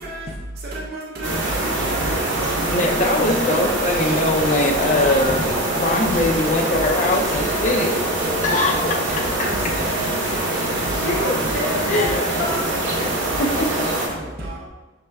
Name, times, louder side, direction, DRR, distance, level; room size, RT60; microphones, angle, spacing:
voice 1, 0.7-1.4 1.9-2.5 3.5-3.6 5.2-5.3 5.9-6.0 6.5-6.6 7.0-7.1 7.4-7.8 9.4-9.5 9.8-10.1 10.4-10.5 12.2-12.5 13.9-14.0, right 2 dB, 55° right, -3 dB, 0.6 m, -31 dB
sound 1, 1.2-14.1, right 1 dB, 75° right, 0.9 m, -24 dB
voice 2, 2.7-5.4 5.8-8.0 8.4-8.7 11.9-12.2 13.6-13.7, left 2 dB, 40° left, 2 dB, 0.5 m, -21 dB
voice 3, 7.8-9.7 10.9-12.6 12.9-13.0 13.4-13.5, left 1 dB, 70° left, -5 dB, 0.9 m, -29 dB
sound 2, 8.0-13.1, left 1 dB, ahead, 0.7 m, -40 dB
6.3 x 3.3 x 2.2 m, 1.2 s
head